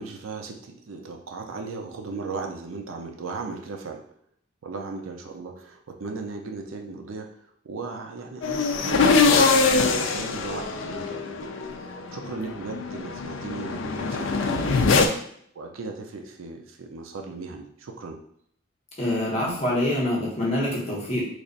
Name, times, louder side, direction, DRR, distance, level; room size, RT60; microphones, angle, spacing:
voice 1, 0.0-4.0 4.6-11.3 11.8-15.1 15.5-18.2, right 3 dB, 75° right, 3 dB, 0.5 m, -37 dB
sound 1, 8.4-15.1, left 4 dB, 60° left, 0.4 m, -23 dB
voice 2, 19.0-21.2, left 1 dB, 30° left, -5 dB, 1.1 m, -25 dB
3.3 x 2.4 x 3.9 m, 0.66 s
head